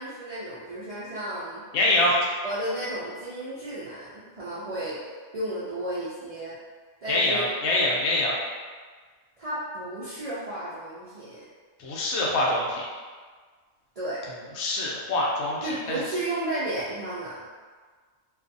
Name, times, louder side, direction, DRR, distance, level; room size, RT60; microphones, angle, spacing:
voice 1, 0.0-1.6 2.4-5.0 5.3-6.5 7.0-7.4 9.4-11.4 14.0-14.2 15.6-17.4, right 1 dB, 70° right, -11 dB, 0.3 m, -33 dB
voice 2, 1.7-2.2 7.1-8.3 11.8-12.9 14.6-15.6, left 1 dB, 70° left, -4 dB, 0.8 m, -24 dB
2.5 x 2.3 x 2.5 m, 1.5 s
omnidirectional pair, 1.3 m